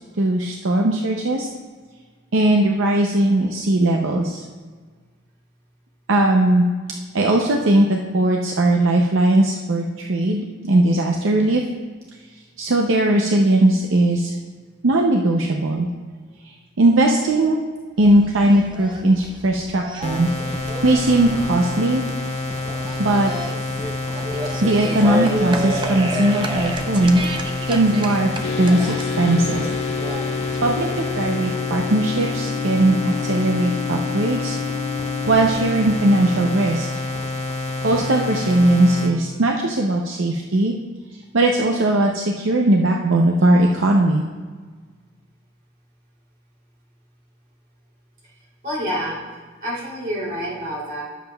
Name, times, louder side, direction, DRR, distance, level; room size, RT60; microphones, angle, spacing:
voice 1, 0.2-1.5 2.3-4.4 6.1-6.6 7.1-11.6 12.6-14.3 14.8-15.9 16.4-17.5 18.0-22.0 23.0-23.3 24.6-27.2 27.7-29.7 30.6-34.6 35.3-36.9 37.8-40.7 41.3-44.2, right 1 dB, 75° right, 0 dB, 0.6 m, -19 dB
sound 1, 18.0-31.3, right 1 dB, 25° right, 0.6 m, -31 dB
sound 2, 20.0-39.1, left 2 dB, 30° left, 0.8 m, -28 dB
sound 3, 28.4-36.7, left 9 dB, 60° left, 0.3 m, -30 dB
voice 2, 48.6-49.2 49.6-51.0, equal, 45° right, -5 dB, 3.0 m, -27 dB
16.0 x 7.3 x 2.3 m, 1.5 s
head